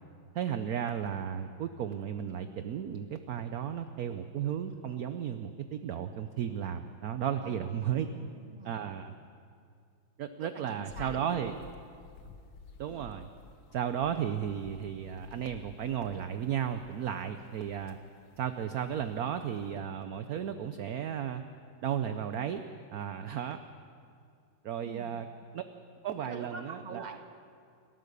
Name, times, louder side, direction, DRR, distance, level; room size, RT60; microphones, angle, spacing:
voice 1, 0.3-8.1 8.6-9.1 10.2-11.5 12.8-13.3 13.7-18.0 18.4-21.4 21.8-22.6 22.9-23.6 24.6-25.3 25.5-25.6 26.0-27.2, right 9 dB, 65° right, 9 dB, 0.9 m, -34 dB
voice 2, 7.4-8.8 10.4-11.5 12.1-12.2 24.8-25.2 26.2-27.2, right 4 dB, 25° right, 5 dB, 1.2 m, -46 dB
sound 1, 10.9-19.8, left 4 dB, 55° left, 1.5 m, -54 dB
29.0 x 13.5 x 6.8 m, 2.3 s
omnidirectional pair, 2.3 m